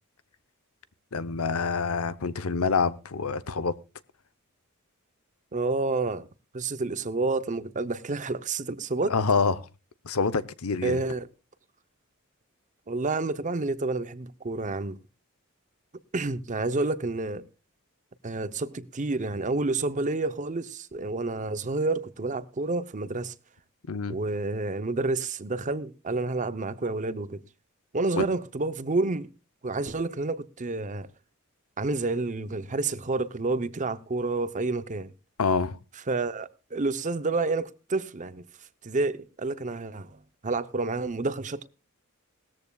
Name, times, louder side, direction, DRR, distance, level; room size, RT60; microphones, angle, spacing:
voice 1, 1.1-3.7 9.1-9.5 10.0-11.0 23.9-24.2 28.2-28.3 35.4-35.8, left 4 dB, 75° left, 0.8 m, -26 dB
voice 2, 5.5-6.2 6.5-9.2 10.8-11.3 12.9-15.0 16.1-17.4 18.2-23.3 24.1-27.4 27.9-29.3 29.6-31.1 31.8-35.1 36.1-38.4 38.8-41.7, right 3 dB, 35° right, 0.7 m, -29 dB
18.5 x 14.0 x 2.3 m
head